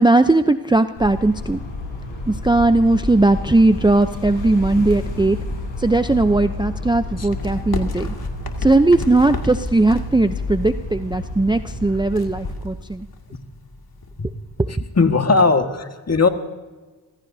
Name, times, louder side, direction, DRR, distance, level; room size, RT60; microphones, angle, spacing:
voice 1, 0.0-1.6 2.3-5.4 5.8-8.1 8.6-13.1 14.6-14.8, right 2 dB, 10° right, 10 dB, 0.6 m, -18 dB
sound 1, 1.0-12.5, left 2 dB, 75° left, 6.5 m, -30 dB
sound 2, 7.2-15.0, left 3 dB, 50° left, 2.4 m, -34 dB
voice 2, 15.0-16.3, left 4 dB, 35° left, 6 dB, 1.8 m, -17 dB
27.0 x 16.0 x 2.7 m, 1.3 s
cardioid pair, 45°, 46 cm